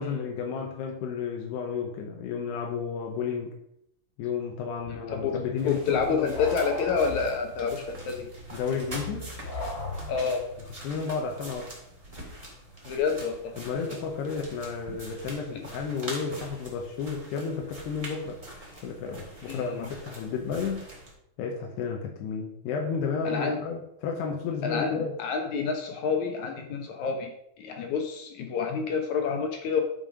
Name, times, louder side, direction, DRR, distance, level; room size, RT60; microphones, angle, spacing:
voice 1, 0.0-3.5 4.2-6.3 8.5-9.3 10.0-10.1 10.8-11.7 13.6-18.4 18.8-20.9 21.4-25.1, left 6 dB, 90° left, 1 dB, 3.2 m, -32 dB
sound 1, 4.8-10.5, left 2 dB, 35° left, 2.2 m, -38 dB
voice 2, 4.9-5.3 5.6-8.3 10.1-10.4 12.8-13.5 19.5-19.7 23.2-23.6 24.6-29.8, left 5 dB, 65° left, 4 dB, 2.0 m, -28 dB
sound 2, 5.6-21.1, right 1 dB, 15° right, 1.4 m, -44 dB
11.0 x 5.7 x 5.0 m, 0.75 s
omnidirectional pair, 4.6 m